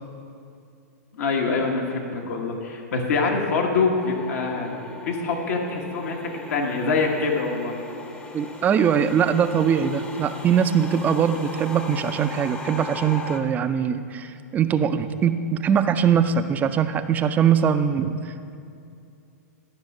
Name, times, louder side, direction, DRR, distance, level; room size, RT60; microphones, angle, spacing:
voice 1, 1.1-4.7 5.0-6.2 6.5-7.7, left 4 dB, 65° left, 0 dB, 1.2 m, -24 dB
sound 1, 4.0-13.4, left 3 dB, 15° left, 0.7 m, -38 dB
voice 2, 8.3-18.6, right 7 dB, 20° right, 10 dB, 0.4 m, -22 dB
12.0 x 5.7 x 5.3 m, 2.5 s
hypercardioid pair, 135°, 9 cm